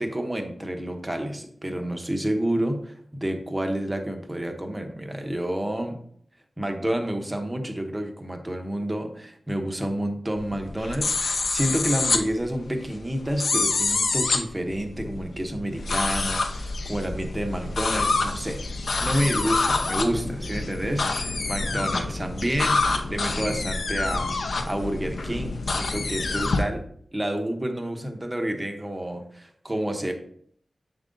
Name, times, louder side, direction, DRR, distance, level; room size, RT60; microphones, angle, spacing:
voice 1, 0.0-6.0 6.6-18.6 19.0-26.8 27.1-30.1, right 1 dB, 20° right, 4 dB, 0.9 m, -29 dB
sound 1, 10.4-26.6, left 3 dB, 85° left, 0.7 m, -27 dB
7.5 x 3.8 x 3.8 m, 0.63 s
wide cardioid pair, 110°, 0 cm